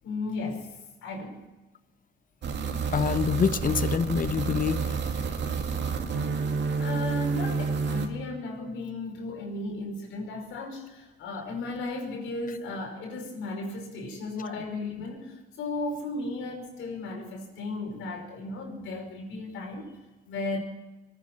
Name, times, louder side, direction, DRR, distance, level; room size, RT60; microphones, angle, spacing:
voice 1, 0.0-1.4 6.8-20.6, left 2 dB, 90° left, 1 dB, 5.4 m, -35 dB
sound 1, 2.4-8.1, right 5 dB, 65° right, 2.2 m, -29 dB
voice 2, 2.9-4.9 14.5-14.6, left 7 dB, 45° left, 14 dB, 0.9 m, -26 dB
24.5 x 9.7 x 6.0 m, 1.2 s
cardioid pair, 90°, 20 cm